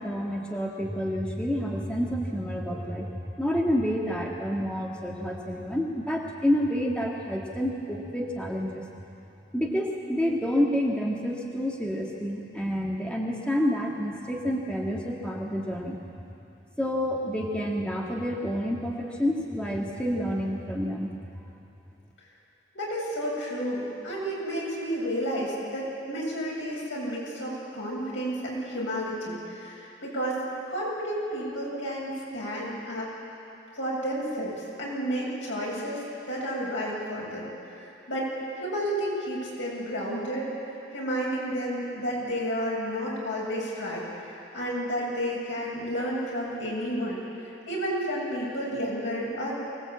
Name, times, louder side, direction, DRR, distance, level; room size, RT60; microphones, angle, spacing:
voice 1, 0.0-3.1 3.4-8.8 9.5-16.0 16.8-21.1, equal, 5° left, -2 dB, 1.9 m, -28 dB
voice 2, 22.7-30.4 30.7-33.1 33.7-37.5 37.8-47.2 47.7-49.5, equal, 85° left, -4 dB, 7.9 m, -31 dB
24.5 x 19.5 x 8.6 m, 2.7 s
head